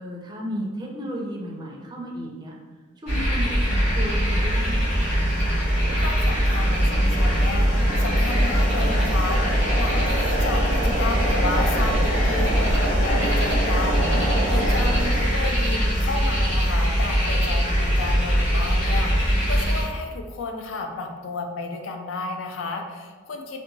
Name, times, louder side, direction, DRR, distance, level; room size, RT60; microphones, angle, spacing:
voice 1, 0.0-2.6 3.0-5.2, equal, 20° right, -2 dB, 0.4 m, -34 dB
sound 1, 3.1-19.8, equal, 35° left, 1.3 m, -22 dB
sound 2, 3.7-15.2, right 1 dB, 80° right, 0.4 m, -29 dB
voice 2, 6.0-23.6, left 3 dB, 80° left, 3 dB, 0.4 m, -32 dB
2.8 x 2.2 x 2.6 m, 1.4 s
head